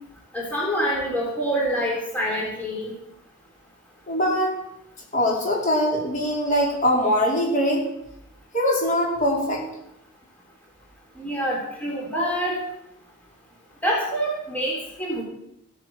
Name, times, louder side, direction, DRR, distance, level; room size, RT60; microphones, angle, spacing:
voice 1, 0.3-2.9 11.2-12.6 13.8-15.2, equal, 5° left, -3 dB, 3.9 m, -26 dB
voice 2, 4.1-4.6 5.1-7.8 8.5-9.6, equal, 35° left, -2 dB, 4.5 m, -22 dB
16.0 x 9.6 x 7.6 m, 0.80 s
head